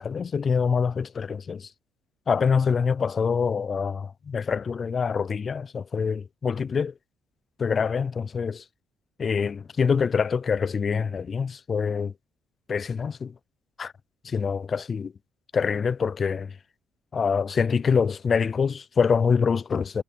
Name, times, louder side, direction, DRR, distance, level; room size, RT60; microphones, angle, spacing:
voice 1, 0.0-1.7 2.3-6.9 7.6-8.6 9.2-12.1 12.7-13.3 13.8-13.9 14.2-15.1 15.5-16.6 17.1-20.0, left 6 dB, 40° left, 0.3 m, -25 dB
cardioid pair, 85°, 0 cm